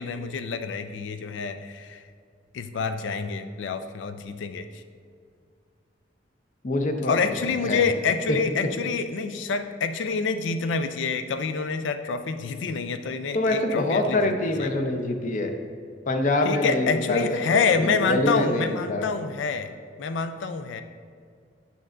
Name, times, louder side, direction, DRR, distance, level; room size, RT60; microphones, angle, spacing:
voice 1, 0.0-2.0 2.5-4.8 7.1-14.7 16.4-19.7 20.0-20.8, left 5 dB, 85° left, 10 dB, 0.4 m, -27 dB
voice 2, 6.6-7.2 7.7-7.8 8.3-8.4 13.3-15.5 16.1-19.1, left 2 dB, 45° left, 4 dB, 0.6 m, -25 dB
8.6 x 6.4 x 2.5 m, 2.2 s
head